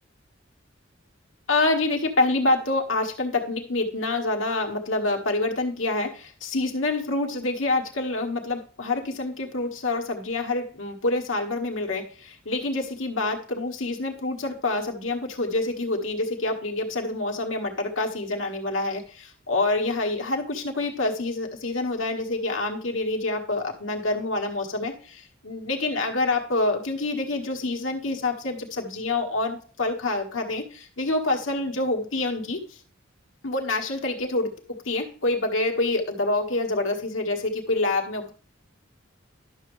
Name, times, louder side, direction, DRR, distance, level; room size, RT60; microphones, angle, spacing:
voice 1, 1.5-32.6 33.4-34.5 34.8-38.3, left 2 dB, 85° left, 2 dB, 1.5 m, -27 dB
11.5 x 6.3 x 3.2 m, 0.41 s
head